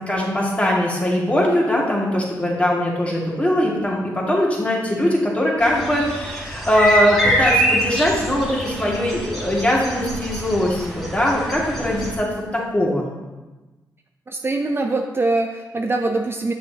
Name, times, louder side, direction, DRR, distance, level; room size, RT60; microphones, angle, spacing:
voice 1, 0.0-13.1, left 1 dB, 15° left, -4 dB, 2.0 m, -21 dB
sound 1, 5.6-12.1, equal, ahead, 1.8 m, -25 dB
voice 2, 14.3-16.5, right 2 dB, 30° right, 4 dB, 0.5 m, -23 dB
6.9 x 6.2 x 2.8 m, 1.2 s
supercardioid pair, 55°, 8 cm